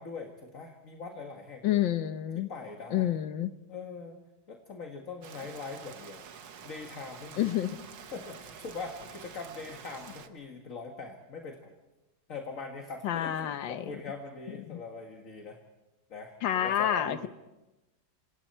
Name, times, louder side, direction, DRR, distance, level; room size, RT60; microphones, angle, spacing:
voice 1, 0.0-1.8 2.4-3.1 3.7-4.2 4.5-6.2 6.6-7.5 8.1-11.7 12.3-15.6 16.1-17.3, left 4 dB, 45° left, 3 dB, 2.1 m, -42 dB
voice 2, 1.6-2.5 2.9-3.5 7.4-7.8 13.0-13.8 14.7-14.8 16.4-17.3, left 11 dB, 75° left, 11 dB, 1.6 m, -29 dB
Rain, 5.2-10.3, right 7 dB, 70° right, 1.9 m, -48 dB
28.0 x 27.0 x 4.4 m, 1.0 s
omnidirectional pair, 2.1 m